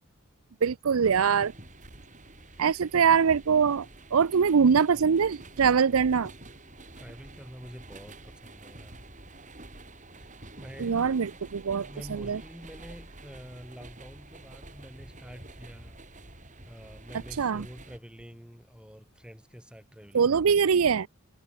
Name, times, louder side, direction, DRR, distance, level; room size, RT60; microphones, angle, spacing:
voice 1, 0.6-1.5 2.6-6.3 10.8-12.4 17.4-17.7 20.1-21.1, right 6 dB, 90° right, 0.5 m, -23 dB
sound 1, 1.0-18.0, right 2 dB, 35° right, 7.1 m, -48 dB
voice 2, 2.5-2.8 7.0-9.0 10.2-11.0 11.8-16.0 16.7-20.6, equal, 5° right, 4.0 m, -47 dB
head